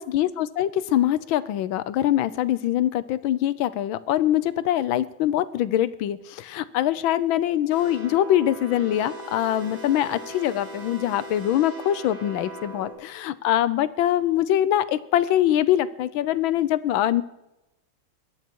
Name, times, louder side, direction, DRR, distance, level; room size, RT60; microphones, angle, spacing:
voice 1, 0.0-17.2, left 12 dB, 80° left, 15 dB, 1.5 m, -23 dB
sound 1, 7.7-12.9, equal, 65° right, 7.1 m, -39 dB
22.5 x 9.6 x 4.6 m, 0.91 s
omnidirectional pair, 2.2 m